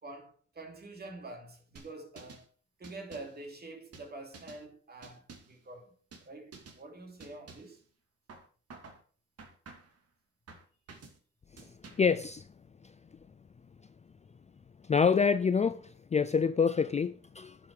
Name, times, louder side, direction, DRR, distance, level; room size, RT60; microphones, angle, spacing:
voice 1, 0.0-2.5 2.8-5.9 6.2-7.8, right 2 dB, 30° right, 3.1 m, -46 dB
sound 1, 1.8-2.5 2.8-3.4 3.9-4.6 5.0-5.6 6.1-6.3 6.5-6.8 7.2-7.8 8.3-9.0 9.4-10.0 10.5-11.2 11.6-12.2, right 4 dB, 55° right, 2.6 m, -51 dB
voice 2, 12.0-12.5 14.8-17.6, left 6 dB, 25° left, 0.4 m, -27 dB
10.0 x 6.3 x 4.9 m
cardioid pair, 90°, 30 cm